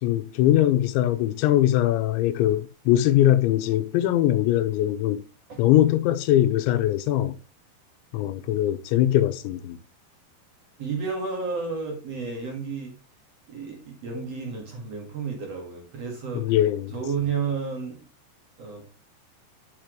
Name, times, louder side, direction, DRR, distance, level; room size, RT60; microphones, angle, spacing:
voice 1, 0.0-5.2 5.6-7.4 8.1-9.8 16.3-16.9, left 13 dB, 90° left, 3.0 m, -21 dB
voice 2, 10.8-12.9 13.5-16.5 16.9-18.1 18.6-18.9, right 5 dB, 55° right, 1.8 m, -31 dB
9.6 x 6.5 x 3.0 m
omnidirectional pair, 5.3 m